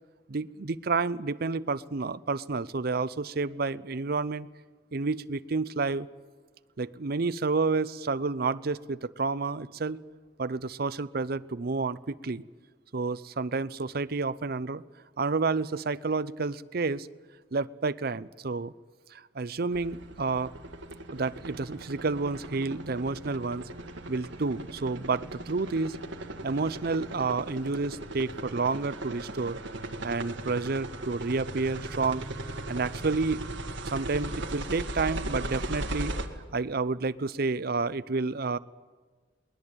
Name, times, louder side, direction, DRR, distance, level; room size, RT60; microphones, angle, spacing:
voice 1, 0.3-4.5 4.9-6.1 6.8-10.0 10.4-12.4 12.9-14.8 15.2-17.1 17.5-18.7 19.1-20.5 21.1-23.6 24.1-26.0 26.4-29.6 30.0-32.3 32.7-33.4 33.8-36.2 36.5-38.6, right 4 dB, 55° right, 16 dB, 0.6 m, -30 dB
sound 1, 19.7-36.3, right 2 dB, 80° right, 1.8 m, -38 dB
22.0 x 19.0 x 9.0 m, 1.4 s
head